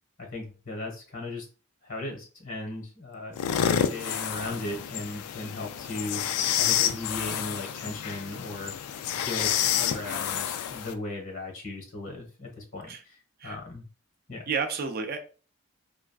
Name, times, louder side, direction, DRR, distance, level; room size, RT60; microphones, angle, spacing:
voice 1, 0.2-1.5 1.8-6.2 6.6-8.7 9.2-13.8 14.3-14.4, left 2 dB, 60° left, 1 dB, 1.3 m, -37 dB
sound 1, 3.3-10.9, left 9 dB, 90° left, 0.3 m, -29 dB
voice 2, 14.5-15.2, right 5 dB, 45° right, 6 dB, 0.3 m, -31 dB
3.3 x 2.4 x 2.3 m, 0.36 s
head